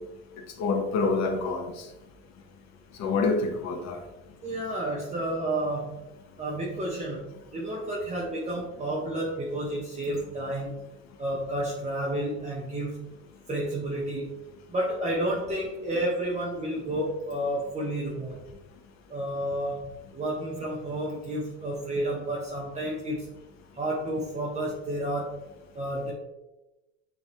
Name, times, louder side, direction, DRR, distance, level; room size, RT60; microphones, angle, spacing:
voice 1, 0.6-1.7 3.0-4.0, left 4 dB, 45° left, 4 dB, 1.3 m, -26 dB
voice 2, 4.4-6.1 6.4-7.2 7.5-10.8 11.2-13.1 13.5-14.3 14.7-18.4 19.1-23.3 23.7-25.4 25.7-26.1, right 1 dB, 20° right, -4 dB, 1.2 m, -31 dB
8.1 x 3.9 x 3.2 m, 1.0 s
supercardioid pair, 110°, 36 cm